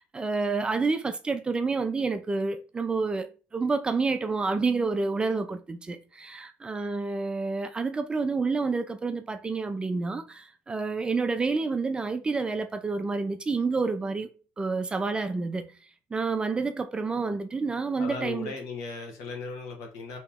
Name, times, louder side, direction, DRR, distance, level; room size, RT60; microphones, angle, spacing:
voice 1, 0.0-14.3 14.6-15.7 16.1-18.5, right 4 dB, 15° right, 0.3 m, -29 dB
voice 2, 18.0-20.2, left 4 dB, 80° left, 1.2 m, -37 dB
3.0 x 2.8 x 3.5 m
cardioid pair, 135°, 6 cm